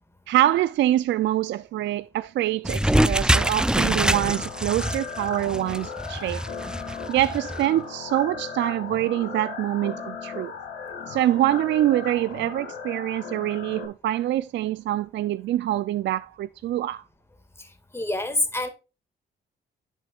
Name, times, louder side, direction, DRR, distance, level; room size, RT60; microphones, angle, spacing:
voice 1, 0.3-6.4 7.1-10.5 11.1-17.0, right 13 dB, 65° right, 0.4 m, -25 dB
sound 1, 2.6-7.7, right 1 dB, 5° right, 0.4 m, -24 dB
sound 2, 3.9-13.9, left 6 dB, 85° left, 2.0 m, -37 dB
voice 2, 17.9-18.7, left 1 dB, 10° left, 1.9 m, -26 dB
10.5 x 6.4 x 2.4 m
cardioid pair, 90°, 20 cm